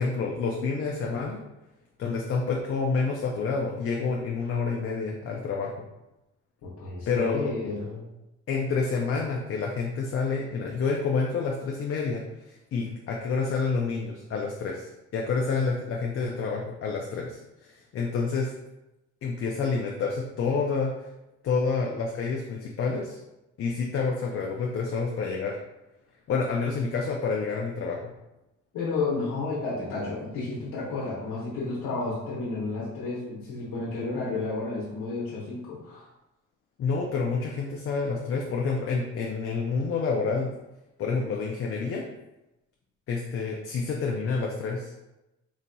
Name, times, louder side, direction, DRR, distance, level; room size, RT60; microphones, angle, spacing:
voice 1, 0.0-1.4 2.0-5.9 7.1-7.5 8.5-12.2 12.7-14.9 15.1-18.5 19.2-20.9 21.4-23.2 23.6-25.6 26.3-28.0 36.8-40.5 41.0-42.0 43.1-44.9, left 4 dB, 45° left, -1 dB, 0.5 m, -28 dB
voice 2, 6.8-8.0 28.7-36.1, left 3 dB, 90° left, -7 dB, 1.0 m, -31 dB
4.0 x 2.6 x 2.2 m, 0.95 s
cardioid pair, 90°, 30 cm